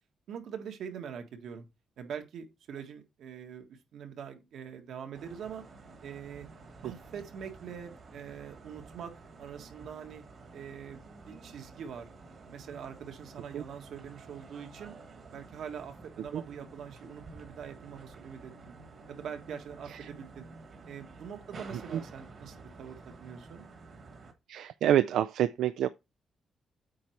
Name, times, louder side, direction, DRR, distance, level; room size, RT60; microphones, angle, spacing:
voice 1, 0.3-1.6 2.0-5.6 6.0-6.5 6.8-9.1 9.4-10.2 10.5-12.1 12.5-14.9 15.3-18.7 19.1-20.5 20.8-23.7, right 7 dB, 70° right, 1.7 m, -43 dB
sound 1, 5.2-24.3, right 3 dB, 40° right, 1.4 m, -51 dB
voice 2, 24.5-25.9, right 11 dB, 90° right, 0.3 m, -27 dB
8.6 x 4.1 x 4.6 m
cardioid pair, 165°, 0 cm